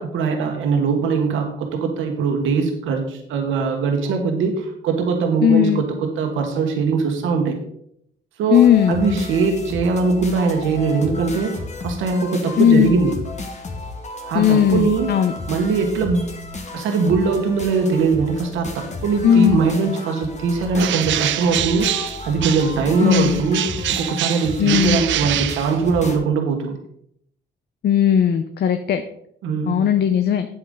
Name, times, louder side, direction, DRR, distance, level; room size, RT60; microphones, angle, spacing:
voice 1, 0.0-7.6 8.4-11.5 11.8-13.2 14.3-15.1 15.5-16.3 16.7-21.9 22.2-23.7 24.0-26.8 29.4-29.8, right 4 dB, 85° right, 3 dB, 1.4 m, -21 dB
voice 2, 5.4-5.8 8.5-9.0 12.6-12.9 14.3-15.3 19.2-19.6 23.0-23.4 24.6-25.0 27.8-29.0 29.7-30.5, left 9 dB, 55° left, 9 dB, 0.6 m, -16 dB
sound 1, 8.5-26.2, left 3 dB, 35° left, 1.5 m, -33 dB
Bird, 20.7-22.8 23.1-26.2, right 12 dB, 70° right, 0.5 m, -25 dB
8.5 x 8.0 x 3.9 m, 0.71 s
cardioid pair, 90°, 20 cm